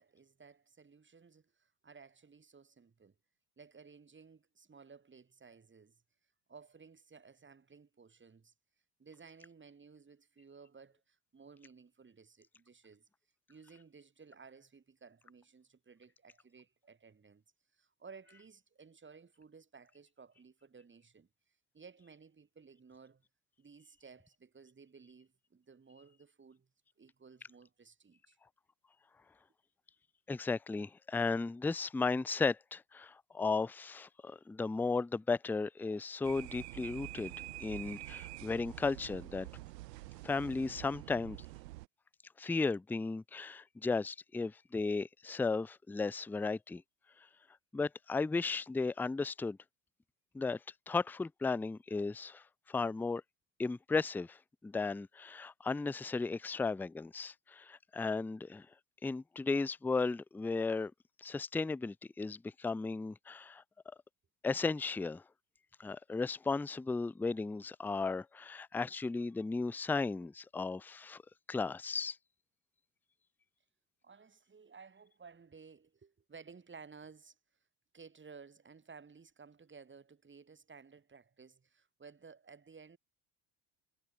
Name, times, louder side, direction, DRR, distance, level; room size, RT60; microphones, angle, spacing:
voice 1, 0.0-3.1 3.6-6.0 6.5-8.5 9.0-13.1 13.5-17.4 17.7-21.3 21.7-23.2 23.6-26.7 27.0-28.4 74.0-77.4 77.9-83.0, right 5 dB, 25° right, 4.6 m, -57 dB
voice 2, 30.3-39.5 40.2-41.4 42.4-46.8 47.7-49.6 50.3-50.6 50.9-53.2 53.6-58.7 59.0-60.9 61.2-63.6 64.4-65.2 65.8-71.2 71.5-72.2, left 4 dB, 5° left, 0.5 m, -35 dB
sound 1, 36.2-41.9, right 19 dB, 75° right, 1.1 m, -47 dB
hypercardioid pair, 65°, 49 cm